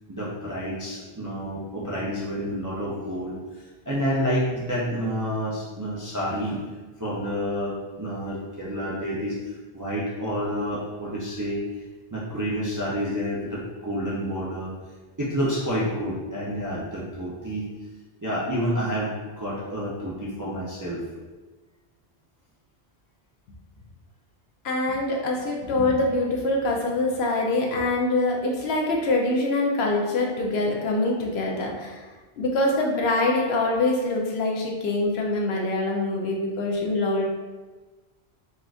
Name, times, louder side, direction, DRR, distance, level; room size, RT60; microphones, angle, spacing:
voice 1, 0.1-6.6 7.0-11.8 12.1-14.7 15.2-17.7 18.2-21.0, equal, 30° right, -7 dB, 0.3 m, -29 dB
voice 2, 24.6-32.1 32.4-37.3, left 2 dB, 75° left, -1 dB, 0.9 m, -24 dB
4.2 x 2.4 x 2.4 m, 1.3 s
omnidirectional pair, 1.1 m